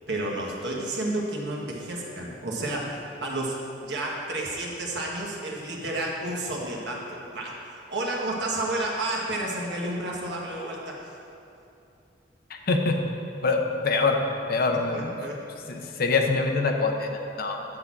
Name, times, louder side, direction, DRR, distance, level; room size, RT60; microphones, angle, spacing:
voice 1, 0.1-3.6 3.8-11.2 14.9-15.4, right 1 dB, 70° right, -2 dB, 1.4 m, -31 dB
voice 2, 12.5-13.0 13.4-14.2 14.5-15.1 15.7-17.6, left 3 dB, 55° left, 3 dB, 0.8 m, -25 dB
9.2 x 4.0 x 7.2 m, 2.7 s
head